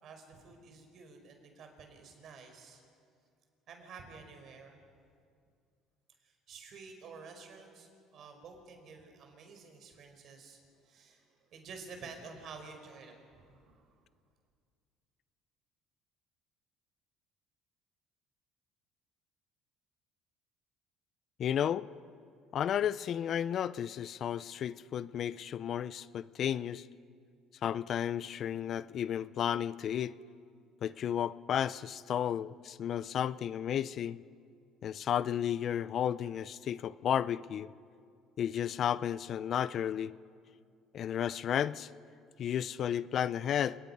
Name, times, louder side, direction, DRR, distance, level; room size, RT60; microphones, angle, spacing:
voice 1, 0.0-2.8 3.7-4.8 6.2-14.0, right 4 dB, 55° right, 5 dB, 4.7 m, -51 dB
voice 2, 21.4-21.9 22.5-26.9 27.6-30.1 30.8-34.2 34.8-37.7 38.4-40.2 40.9-41.9 42.4-43.8, left 9 dB, 50° left, 17 dB, 0.5 m, -33 dB
29.0 x 19.5 x 5.4 m, 2.2 s
cardioid pair, 100°, 0 cm